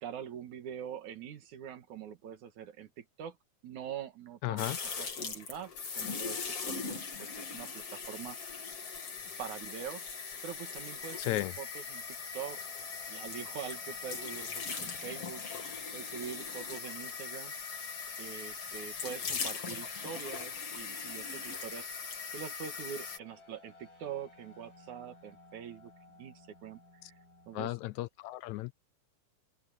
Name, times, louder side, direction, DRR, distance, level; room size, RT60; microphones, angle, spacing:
voice 1, 0.0-3.4 3.6-6.4 6.7-8.4 9.4-10.1 10.4-12.0 12.3-12.6 13.1-17.8 18.2-22.0 22.3-25.9 26.2-26.8 27.5-27.7, right 8 dB, 70° right, 3.1 m, -44 dB
voice 2, 4.4-4.8 11.2-11.5 27.0-27.1 27.5-28.7, left 17 dB, 80° left, 1.8 m, -35 dB
sound 1, 4.6-23.2, left 5 dB, 50° left, 3.8 m, -40 dB
sound 2, 11.7-27.6, left 2 dB, 25° left, 8.5 m, -60 dB
open air
omnidirectional pair, 3.6 m